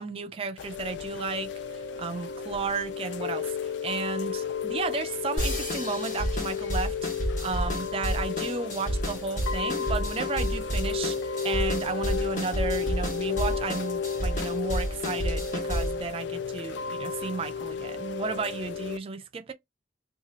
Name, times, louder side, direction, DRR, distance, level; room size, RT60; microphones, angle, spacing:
voice 1, 0.0-1.5 2.0-11.2 11.4-19.5, right 4 dB, 30° right, 0.3 m, -33 dB
Chime / Rain, 0.6-19.0, left 6 dB, 85° left, 0.3 m, -33 dB
sound 1, 5.4-16.0, right 1 dB, 45° left, 1.2 m, -31 dB
2.8 x 2.3 x 2.7 m
head